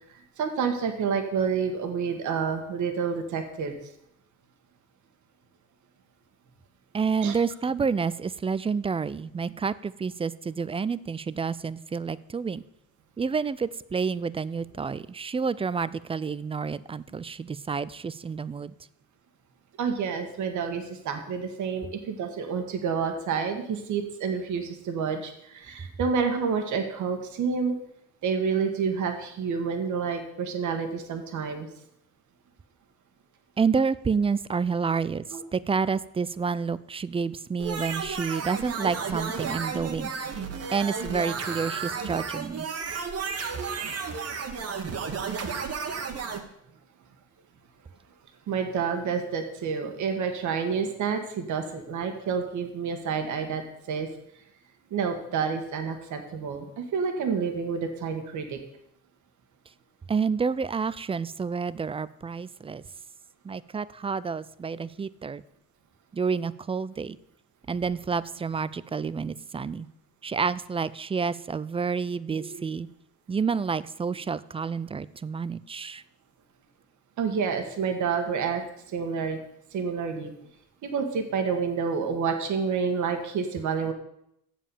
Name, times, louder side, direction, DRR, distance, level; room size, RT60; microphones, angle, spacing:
voice 1, 0.4-3.8 7.2-7.3 19.8-27.7 28.2-31.7 35.3-35.4 48.5-53.6 53.9-54.1 54.9-58.6 72.3-72.6 77.2-78.6 78.9-79.4 79.7-80.3 80.8-83.9, right 6 dB, 75° right, 5 dB, 1.5 m, -29 dB
voice 2, 6.9-12.6 13.2-18.7 33.6-35.2 35.5-40.4 40.7-42.7 60.1-62.8 63.4-65.4 66.1-67.2 67.7-69.9 70.2-72.9 73.3-76.0, right 5 dB, 20° right, 18 dB, 0.3 m, -29 dB
sound 1, 37.6-46.4, right 5 dB, 55° right, 1.3 m, -33 dB
7.6 x 7.3 x 6.9 m, 0.75 s
cardioid pair, 90°, 30 cm